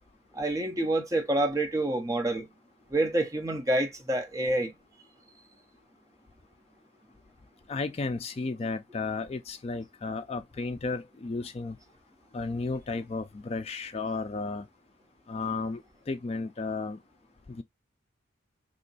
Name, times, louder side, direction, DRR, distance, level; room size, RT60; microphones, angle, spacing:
voice 1, 0.3-2.5 2.9-4.7, right 1 dB, 15° right, 0.6 m, -27 dB
voice 2, 7.7-11.8 12.3-14.7 15.3-15.8 16.1-17.0 17.5-17.6, left 3 dB, 30° left, 0.3 m, -33 dB
3.0 x 2.6 x 3.9 m
head